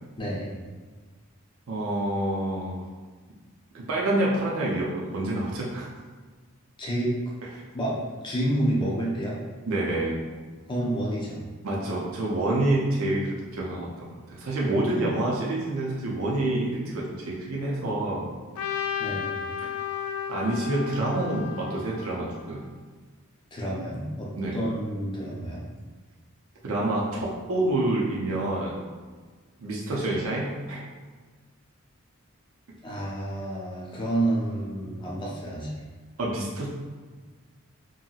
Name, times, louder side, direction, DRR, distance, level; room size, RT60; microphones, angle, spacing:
voice 1, 0.2-0.5 6.8-7.1 7.7-8.0 8.2-9.4 10.7-11.4 19.0-19.4 23.5-25.6 32.8-35.8, right 1 dB, 20° left, -4 dB, 0.5 m, -29 dB
voice 2, 1.7-2.8 3.7-5.9 9.7-10.2 11.6-18.3 20.3-22.6 24.4-24.6 26.6-28.8 29.6-30.8 36.2-36.7, right 1 dB, 70° right, -4 dB, 0.5 m, -27 dB
Trumpet, 18.6-22.7, left 8 dB, 90° left, 0.3 m, -34 dB
2.7 x 2.7 x 2.3 m, 1.4 s
head